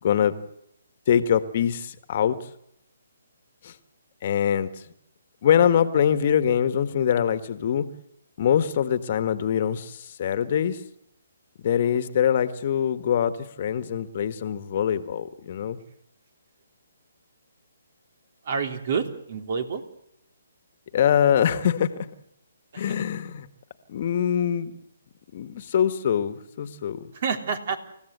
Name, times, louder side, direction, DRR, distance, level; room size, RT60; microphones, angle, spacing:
voice 1, 0.0-0.3 1.1-2.4 3.6-3.7 4.2-4.7 5.4-7.9 8.4-10.8 11.6-15.8 20.9-21.9 22.8-23.5 23.9-24.8 25.3-27.1, left 9 dB, 45° left, 11 dB, 1.6 m, -23 dB
voice 2, 18.4-19.8 22.7-23.0 27.1-27.8, right 6 dB, 50° right, 7 dB, 3.4 m, -28 dB
29.0 x 15.5 x 8.2 m, 0.79 s
hypercardioid pair, 150°, 0 cm